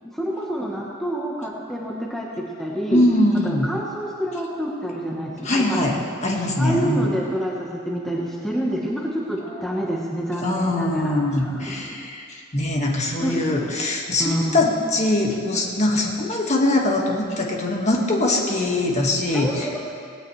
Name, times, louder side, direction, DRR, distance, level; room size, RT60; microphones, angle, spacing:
voice 1, 0.1-3.0 3.4-6.0 6.6-12.0 13.2-13.7 14.2-14.7 19.3-20.0, equal, ahead, -3 dB, 1.2 m, -28 dB
voice 2, 2.9-3.7 5.4-7.1 9.5-9.8 10.4-19.7, left 1 dB, 30° left, 0 dB, 1.7 m, -22 dB
17.5 x 17.5 x 3.3 m, 2.2 s
head